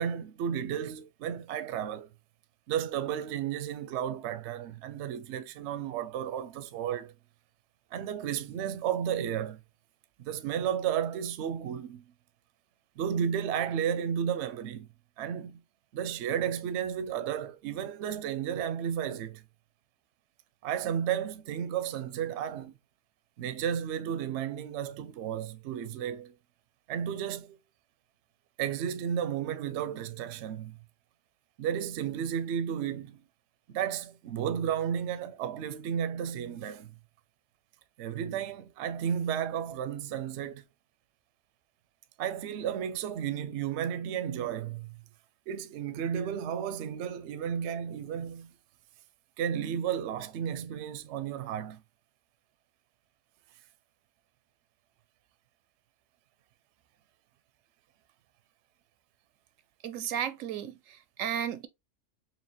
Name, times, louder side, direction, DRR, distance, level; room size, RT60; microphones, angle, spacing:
voice 1, 0.0-2.1 2.7-7.1 7.9-9.6 10.2-12.0 13.0-14.9 15.2-15.6 15.9-19.4 20.6-22.7 23.4-26.3 26.9-27.6 28.6-30.8 31.6-33.2 33.7-36.9 38.0-40.6 42.2-44.9 45.5-48.5 49.4-51.8, right 9 dB, 70° right, 0.8 m, -33 dB
voice 2, 59.8-61.7, right 9 dB, 90° right, 1.0 m, -34 dB
4.5 x 3.1 x 2.9 m
omnidirectional pair, 1.3 m